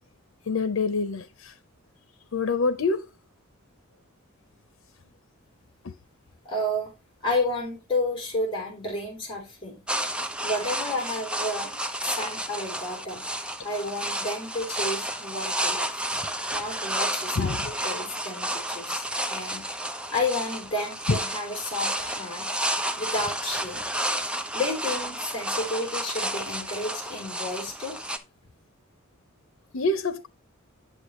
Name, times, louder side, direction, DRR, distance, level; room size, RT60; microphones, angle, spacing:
voice 1, 0.5-1.5 2.3-3.1 5.8-5.9 17.4-17.7 21.1-21.2 29.7-30.3, left 3 dB, 90° left, 0.7 m, -26 dB
voice 2, 6.4-6.9 7.2-9.8 10.4-11.7 12.0-13.3 13.6-15.9 16.5-19.7 20.1-22.5 23.0-23.9 24.5-28.0, left 2 dB, 25° left, 3.5 m, -31 dB
sound 1, 9.9-28.2, right 1 dB, 5° right, 0.6 m, -31 dB
8.3 x 7.7 x 3.1 m
head